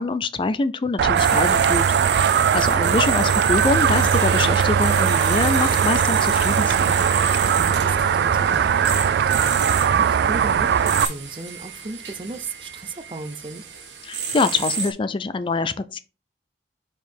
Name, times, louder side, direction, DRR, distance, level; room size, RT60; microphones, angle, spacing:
voice 1, 0.0-1.8 2.5-7.0 14.1-16.0, left 3 dB, 30° left, 0.4 m, -24 dB
sound 1, 1.0-11.0, right 7 dB, 65° right, 0.3 m, -20 dB
sound 2, 1.2-14.9, right 6 dB, 90° right, 1.5 m, -30 dB
sound 3, 2.5-9.1, equal, 10° left, 0.9 m, -40 dB
voice 2, 7.6-13.7, right 2 dB, 30° right, 0.6 m, -36 dB
4.8 x 4.6 x 5.2 m
head